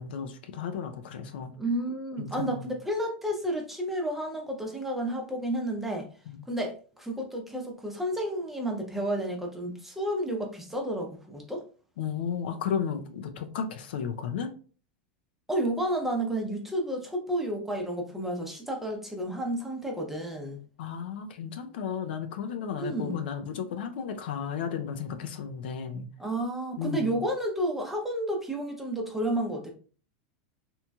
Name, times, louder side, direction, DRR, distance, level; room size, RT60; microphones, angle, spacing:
voice 1, 0.0-1.5 2.2-2.7 6.3-6.5 12.0-14.5 20.8-26.1 26.8-27.2, left 7 dB, 80° left, 7 dB, 0.5 m, -34 dB
voice 2, 1.5-6.1 6.5-11.6 15.5-20.6 22.8-23.2 26.2-29.7, right 1 dB, 5° right, 1 dB, 0.6 m, -31 dB
3.0 x 2.7 x 2.2 m, 0.39 s
supercardioid pair, 130°, 5 cm